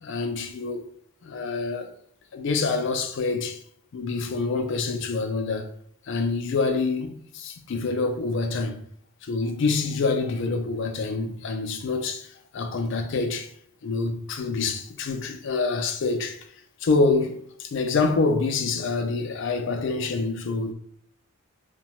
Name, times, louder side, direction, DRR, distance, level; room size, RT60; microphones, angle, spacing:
voice 1, 0.0-0.8 1.2-1.9 2.3-3.6 3.9-5.7 6.1-8.8 9.2-12.3 12.5-13.5 13.8-16.4 16.8-20.7, left 3 dB, 55° left, 0.3 m, -26 dB
2.8 x 2.2 x 2.9 m
head